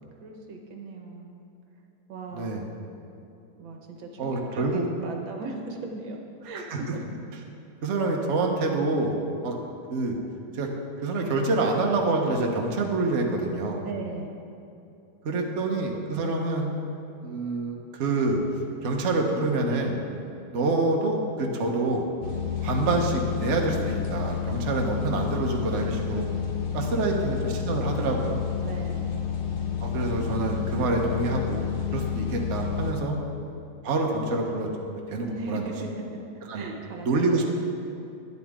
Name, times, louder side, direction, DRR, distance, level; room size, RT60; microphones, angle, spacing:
voice 1, 0.2-1.5 2.1-2.7 3.6-7.0 13.8-14.4 26.8-27.3 28.6-29.2 35.3-36.2 36.5-37.4, right 3 dB, 80° right, 2 dB, 1.8 m, -38 dB
voice 2, 4.2-4.9 6.7-6.8 7.8-9.2 9.4-9.6 9.9-10.2 10.5-10.7 11.0-13.8 15.2-16.7 17.2-18.4 18.8-20.0 20.5-22.0 22.6-26.3 26.7-28.4 29.8-31.7 31.9-33.2 33.8-35.6 36.5-36.6 37.0-37.4, right 3 dB, 45° right, 1 dB, 1.2 m, -26 dB
sound 1, 22.2-32.9, left 8 dB, 50° left, 0.6 m, -30 dB
12.0 x 10.5 x 3.7 m, 2.7 s
omnidirectional pair, 2.1 m